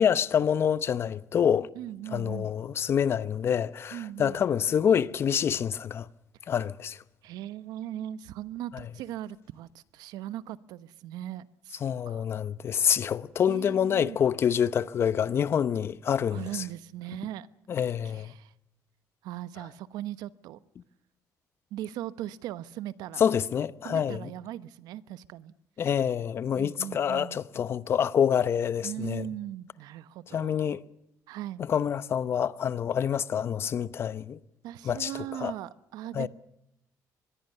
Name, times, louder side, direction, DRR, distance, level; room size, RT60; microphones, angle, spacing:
voice 1, 0.0-1.7 2.1-6.1 6.5-7.0 8.7-8.8 11.8-16.6 17.7-18.3 23.2-24.3 25.8-29.3 30.3-30.8 31.7-34.4 34.8-35.1 35.4-35.5 36.1-36.3, left 8 dB, 40° left, 0.8 m, -27 dB
voice 2, 1.7-2.5 3.9-4.4 7.2-12.3 13.5-14.2 16.3-17.5 18.0-18.5 19.2-20.6 21.7-23.2 23.8-25.5 26.5-27.4 28.8-30.8 31.3-31.6 34.6-36.3, right 12 dB, 85° right, 1.1 m, -39 dB
24.5 x 21.5 x 6.8 m
cardioid pair, 155°, 7 cm